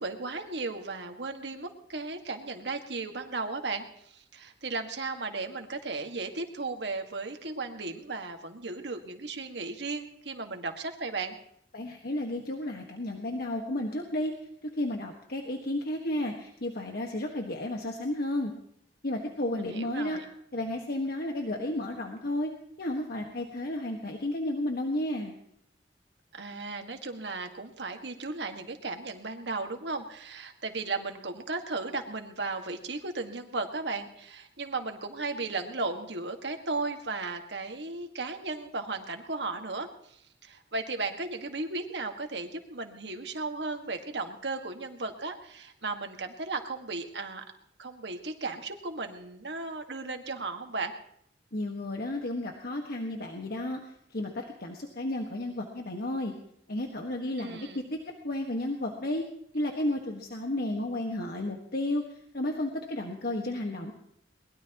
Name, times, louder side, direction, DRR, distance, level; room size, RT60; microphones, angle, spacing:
voice 1, 0.0-3.8 4.1-11.4 19.5-20.2 26.3-40.2 40.4-47.4 47.8-50.9 57.4-57.8, right 3 dB, 75° right, 5 dB, 1.8 m, -35 dB
voice 2, 11.7-14.3 14.8-18.5 19.0-20.2 20.5-22.5 22.8-25.3 51.5-53.8 54.1-56.3 56.7-58.0 58.2-59.2 59.5-62.0 62.3-63.9, left 1 dB, 60° left, 2 dB, 1.5 m, -32 dB
22.5 x 20.0 x 3.0 m, 0.71 s
head